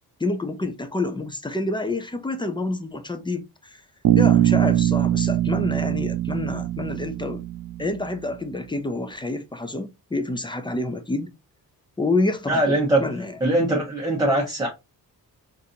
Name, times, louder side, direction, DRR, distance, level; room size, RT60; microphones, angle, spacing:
voice 1, 0.2-3.8 4.2-7.4 7.8-11.3 12.0-13.4, left 2 dB, 15° left, 0.4 m, -28 dB
Bass guitar, 4.0-8.1, right 13 dB, 60° right, 0.5 m, -22 dB
voice 2, 12.5-13.0 13.4-14.7, right 1 dB, 10° right, 0.9 m, -21 dB
4.0 x 2.6 x 2.7 m
wide cardioid pair, 135°, 38 cm